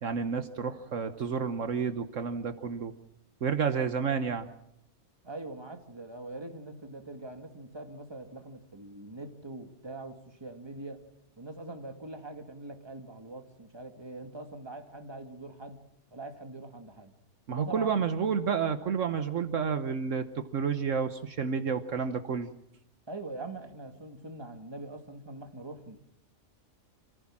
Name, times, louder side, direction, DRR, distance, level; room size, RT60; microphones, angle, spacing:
voice 1, 0.0-2.9 3.4-4.5 17.5-22.5, right 6 dB, 65° right, 9 dB, 1.3 m, -30 dB
voice 2, 5.2-11.0 11.4-15.8 16.1-17.1 17.5-18.0 23.1-26.0, right 2 dB, 20° right, 5 dB, 2.0 m, -43 dB
27.5 x 15.0 x 7.4 m, 0.80 s
omnidirectional pair, 1.4 m